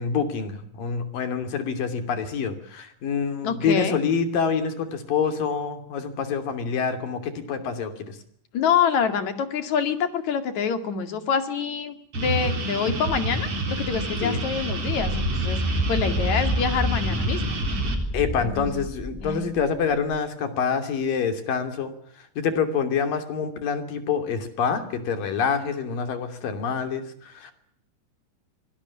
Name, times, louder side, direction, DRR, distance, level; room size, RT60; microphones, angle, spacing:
voice 1, 0.0-8.2 14.2-14.4 18.1-21.9 22.4-27.5, left 6 dB, 80° left, 8 dB, 4.5 m, -26 dB
voice 2, 3.4-4.0 8.5-17.6 18.6-18.8 19.2-19.5, left 7 dB, 60° left, 9 dB, 3.6 m, -26 dB
sound 1, 12.1-17.9, right 2 dB, 45° right, 4.7 m, -29 dB
sound 2, 13.1-20.2, left 1 dB, 5° left, 1.2 m, -29 dB
25.0 x 19.5 x 8.5 m, 0.67 s
omnidirectional pair, 3.9 m